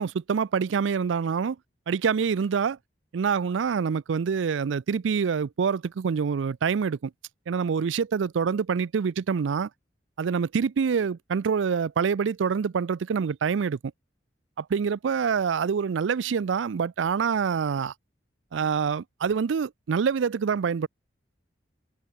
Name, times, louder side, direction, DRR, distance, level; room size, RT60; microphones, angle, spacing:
voice 1, 0.0-1.6 1.9-2.8 3.1-7.1 7.5-9.7 10.2-13.8 14.6-17.9 18.5-20.9, right 6 dB, 85° right, 0.4 m, -26 dB
head